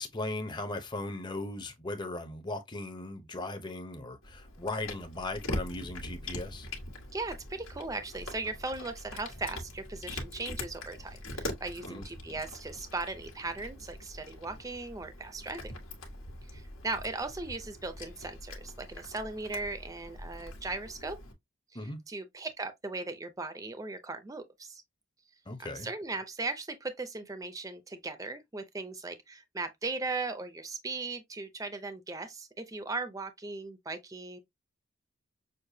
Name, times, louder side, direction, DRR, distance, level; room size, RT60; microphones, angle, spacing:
voice 1, 0.0-6.7 11.9-12.1 21.7-22.0 25.5-25.9, left 2 dB, 20° left, 0.7 m, -38 dB
Cat, 4.2-21.3, left 1 dB, 85° left, 1.5 m, -43 dB
voice 2, 7.1-15.6 16.5-21.2 22.1-24.8 25.6-34.4, right 3 dB, 15° right, 0.5 m, -38 dB
6.5 x 2.2 x 2.7 m
head